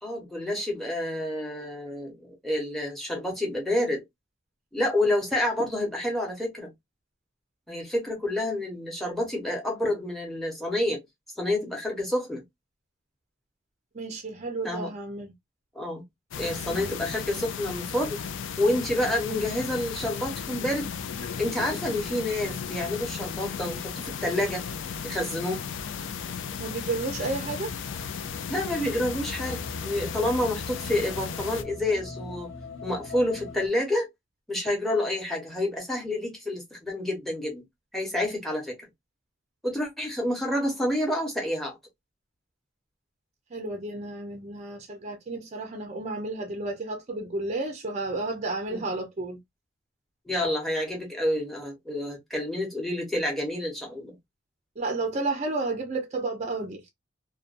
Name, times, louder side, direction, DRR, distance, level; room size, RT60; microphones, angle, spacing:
voice 1, 0.0-4.0 4.7-6.7 7.7-11.0 11.4-12.4 14.6-14.9 15.7-16.0 16.4-18.2 18.6-20.9 21.4-24.6 25.0-25.6 28.5-32.5 32.8-34.1 34.5-37.6 37.9-38.8 39.6-41.8 48.7-48.8 50.3-54.2, left 1 dB, ahead, 0.9 m, -28 dB
voice 2, 13.9-15.3 16.6-16.8 26.6-27.7 43.5-49.4 54.8-56.8, right 3 dB, 35° right, 0.5 m, -32 dB
sound 1, 16.3-31.6, left 7 dB, 65° left, 0.4 m, -35 dB
sound 2, 25.0-33.7, left 3 dB, 80° left, 0.8 m, -43 dB
2.5 x 2.2 x 2.4 m
head